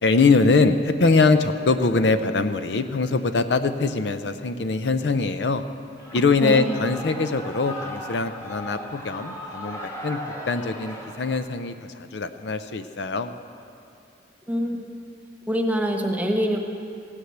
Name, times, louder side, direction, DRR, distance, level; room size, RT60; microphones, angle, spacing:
voice 1, 0.0-5.6 6.1-10.2 10.5-13.3, left 3 dB, 70° left, 10 dB, 0.6 m, -22 dB
Shout / Cheering, 6.0-11.4, left 1 dB, 15° left, 1.5 m, -37 dB
voice 2, 6.4-6.7 14.5-14.9 15.5-16.6, equal, 10° right, 2 dB, 1.2 m, -24 dB
16.0 x 9.9 x 8.0 m, 2.8 s
head